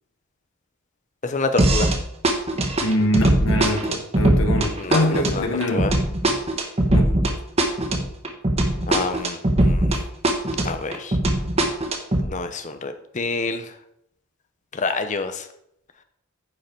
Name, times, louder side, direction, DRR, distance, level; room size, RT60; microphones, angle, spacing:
voice 1, 1.2-1.9 4.8-5.9 8.9-9.9 10.6-11.2 12.2-13.7 14.7-15.5, left 3 dB, 35° left, 8 dB, 0.7 m, -27 dB
sound 1, 1.6-2.0 2.2-10.0 10.2-12.2, right 1 dB, 30° right, 1.1 m, -20 dB
voice 2, 2.8-6.0 6.9-7.1, left 1 dB, 60° left, 4 dB, 1.2 m, -24 dB
9.4 x 5.6 x 4.5 m, 0.73 s
head